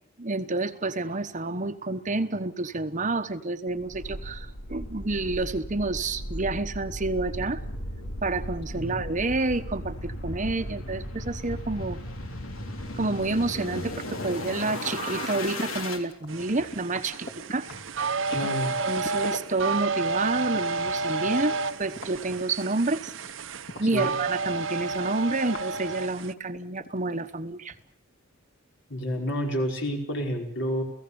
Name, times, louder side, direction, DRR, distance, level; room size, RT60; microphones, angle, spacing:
voice 1, 0.2-7.6 8.2-12.0 12.9-17.7 18.8-23.1 23.8-27.7, right 3 dB, 40° right, 9 dB, 1.1 m, -29 dB
sound 1, 3.8-16.0, left 1 dB, 85° left, 3.3 m, -36 dB
sound 2, 15.1-19.4 19.7-24.3 24.7-27.4 27.6-27.7, left 1 dB, 45° left, 3.5 m, -41 dB
sound 3, 16.3-26.3, right 3 dB, 70° right, 1.0 m, -31 dB
voice 2, 18.3-18.7 23.8-24.1 28.9-30.8, equal, 60° left, 2 dB, 5.2 m, -29 dB
30.0 x 16.5 x 7.0 m, 0.66 s
head